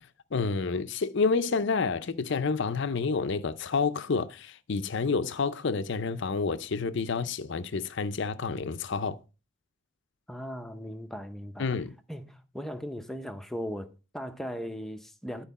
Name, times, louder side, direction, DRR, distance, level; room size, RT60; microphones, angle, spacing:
voice 1, 0.3-9.2 11.6-11.9, left 4 dB, 60° left, 0.5 m, -29 dB
voice 2, 10.3-11.7 12.1-15.4, equal, ahead, 0.6 m, -38 dB
11.0 x 4.5 x 4.1 m
head